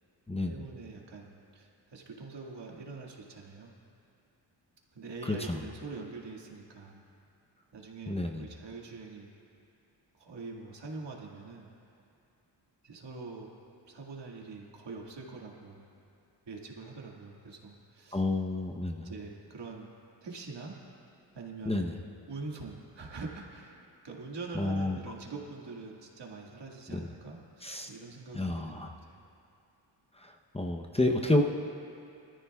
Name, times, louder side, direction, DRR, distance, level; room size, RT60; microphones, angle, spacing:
voice 1, 0.5-3.7 4.9-7.0 7.7-9.3 10.1-11.7 12.8-13.5 13.9-15.9 16.5-18.2 19.0-19.9 20.2-20.8 21.3-21.8 22.3-23.8 24.0-29.2, right 3 dB, 70° right, -1 dB, 2.1 m, -44 dB
voice 2, 5.3-5.6 8.1-8.5 18.1-19.1 21.6-22.0 24.5-25.0 26.9-27.1 27.6-27.9 28.3-28.9 30.2-31.4, left 2 dB, 15° left, 2 dB, 0.8 m, -30 dB
24.5 x 14.0 x 2.4 m, 2.6 s
cardioid pair, 90°, 44 cm